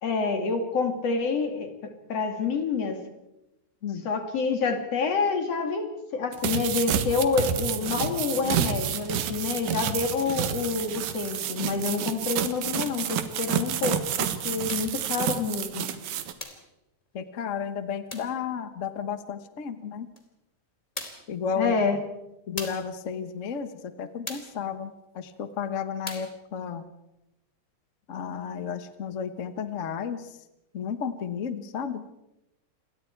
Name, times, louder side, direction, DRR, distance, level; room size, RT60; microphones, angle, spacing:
voice 1, 0.0-3.0 4.1-15.9 21.6-22.0, left 4 dB, 55° left, 5 dB, 3.5 m, -28 dB
sound 1, 6.3-16.3, right 9 dB, 85° right, 2.9 m, -29 dB
sound 2, 14.7-15.0 16.4-16.7 18.1-18.4 20.2-20.3 21.0-21.3 22.6-22.9 24.3-24.6 26.1-26.4, left 2 dB, 15° left, 2.3 m, -39 dB
voice 2, 17.1-20.1 21.3-21.8 22.5-26.9 28.1-30.4 30.7-32.0, left 7 dB, 75° left, 10 dB, 0.7 m, -33 dB
28.5 x 22.0 x 4.7 m, 0.90 s
omnidirectional pair, 3.5 m